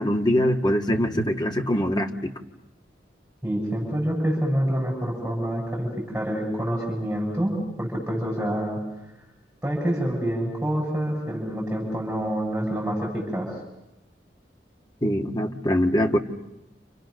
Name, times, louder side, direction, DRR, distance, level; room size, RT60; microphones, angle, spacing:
voice 1, 0.0-2.3 15.0-16.2, equal, 25° left, 3 dB, 1.8 m, -23 dB
voice 2, 3.4-8.8 9.6-13.5, equal, 5° right, -3 dB, 7.1 m, -27 dB
30.0 x 29.0 x 6.6 m, 0.91 s
head